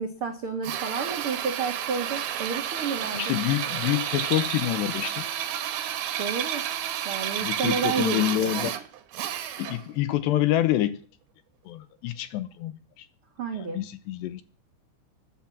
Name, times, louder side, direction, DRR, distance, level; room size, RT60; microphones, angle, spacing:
voice 1, 0.0-3.3 6.2-6.6 7.0-8.5 13.4-13.8, right 6 dB, 85° right, 1.2 m, -31 dB
Drill, 0.6-9.9, right 10 dB, 65° right, 3.0 m, -31 dB
voice 2, 3.1-5.3 7.4-8.7 9.6-11.0 11.7-13.1 13.5-14.4, left 14 dB, 75° left, 2.8 m, -27 dB
14.0 x 10.5 x 7.3 m
omnidirectional pair, 5.4 m